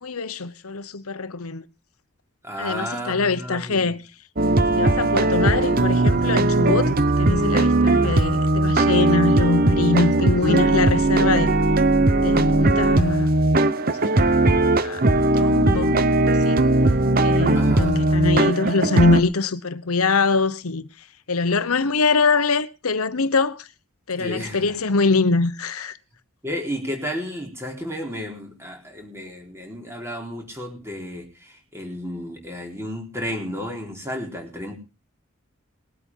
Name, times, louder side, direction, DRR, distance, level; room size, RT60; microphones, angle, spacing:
voice 1, 0.0-1.6 2.6-4.0 4.7-11.5 12.2-13.3 13.8-15.0 15.3-16.6 17.2-20.9 21.3-23.7 24.1-26.0, left 3 dB, 85° left, 1.0 m, -23 dB
voice 2, 2.4-3.9 7.2-7.4 17.5-18.0 24.2-24.8 26.4-34.7, equal, 10° right, 4.0 m, -33 dB
sound 1, 4.4-19.2, right 2 dB, 40° right, 1.0 m, -19 dB
20.5 x 8.4 x 5.5 m
head